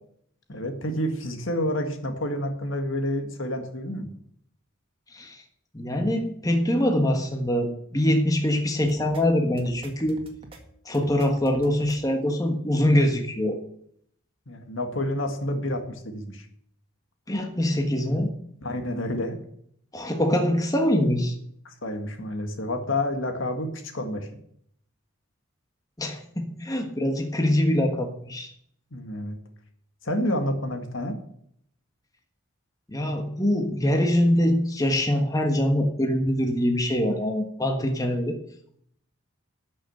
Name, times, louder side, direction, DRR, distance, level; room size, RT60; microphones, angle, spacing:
voice 1, 0.5-4.1 14.5-16.5 18.6-19.4 21.7-24.3 28.9-29.4 30.0-31.2, left 1 dB, 70° left, 6 dB, 1.9 m, -29 dB
voice 2, 5.1-5.4 5.7-10.2 10.8-13.6 17.3-18.3 19.9-21.3 26.0-28.5 32.9-38.3, left 1 dB, 15° left, 3 dB, 1.4 m, -24 dB
sound 1, 8.8-9.2 9.6-10.6 10.9-12.0, right 1 dB, 25° right, 1.9 m, -46 dB
12.0 x 6.4 x 7.8 m, 0.68 s
head